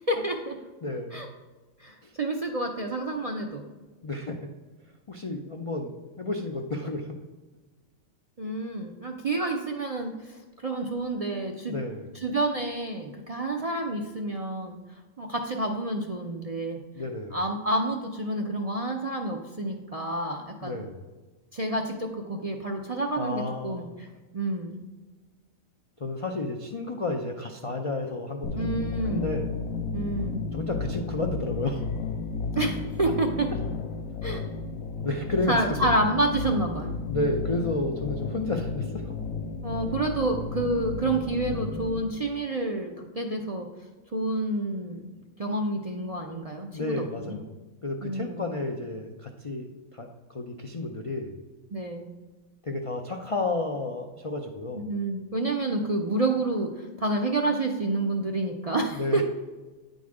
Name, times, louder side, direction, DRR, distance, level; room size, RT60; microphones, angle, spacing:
voice 1, 0.1-0.6 1.1-1.3 1.8-3.6 8.4-10.1 10.6-11.8 12.2-14.8 15.2-16.8 17.3-20.8 21.5-23.9 24.3-24.8 28.6-29.3 29.9-30.4 32.6-33.5 34.2-34.4 35.5-37.0 39.6-43.7 44.1-45.0 45.4-47.4 48.0-48.5 51.7-52.1 54.7-59.2, right 2 dB, 45° right, 2 dB, 0.5 m, -29 dB
voice 2, 0.8-1.3 2.0-2.1 4.0-4.4 5.1-7.2 11.7-12.1 17.0-17.4 20.6-21.0 23.1-23.9 26.0-29.5 30.5-31.8 35.0-35.8 37.1-39.2 46.7-47.5 47.8-51.4 52.6-54.8 58.9-59.2, left 2 dB, 50° left, 2 dB, 0.4 m, -31 dB
sound 1, 28.4-42.0, left 4 dB, 85° left, 1.1 m, -33 dB
9.3 x 4.0 x 4.8 m, 1.2 s
omnidirectional pair, 1.4 m